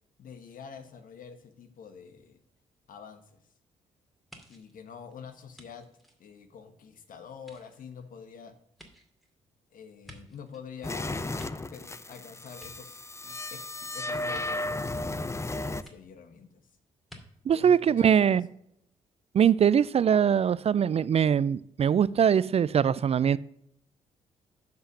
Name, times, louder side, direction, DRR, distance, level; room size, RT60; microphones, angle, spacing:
voice 1, 0.2-2.4 2.9-3.4 4.5-5.9 6.2-8.5 9.7-11.4 11.7-16.6 17.5-18.4, left 6 dB, 60° left, 8 dB, 1.3 m, -47 dB
sound 1, 4.3-6.9 7.4-10.7 11.1-12.2 12.5-13.4 14.3-14.5 15.8-15.9 17.1-17.2 17.5-17.7, equal, ahead, 2.3 m, -54 dB
sound 2, 10.8-15.8, left 2 dB, 20° left, 0.6 m, -34 dB
voice 2, 17.5-18.4 19.3-23.4, right 8 dB, 40° right, 20 dB, 0.4 m, -22 dB
7.7 x 5.6 x 6.4 m, 0.72 s
hypercardioid pair, 45°, 16 cm